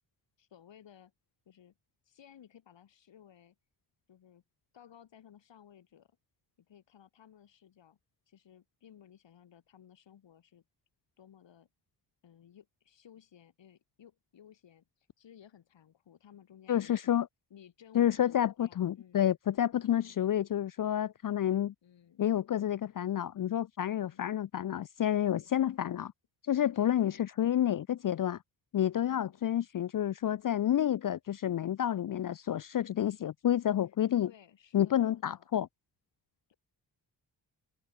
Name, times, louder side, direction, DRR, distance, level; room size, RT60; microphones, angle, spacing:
voice 1, 0.4-1.1 1.5-1.7 2.1-3.6 4.1-4.4 4.7-6.2 6.6-8.0 8.3-10.6 11.2-11.7 12.2-17.2 17.5-19.3 20.0-20.2 21.8-22.2 23.9-24.2 26.5-27.2 29.0-29.4 34.2-35.6 36.5-36.6, left 9 dB, 85° left, 7.4 m, -58 dB
voice 2, 16.7-17.3 17.9-21.7 22.2-26.1 26.5-28.4 28.7-34.3 34.7-35.7, left 11 dB, 50° left, 0.5 m, -29 dB
cardioid pair, 90°, 43 cm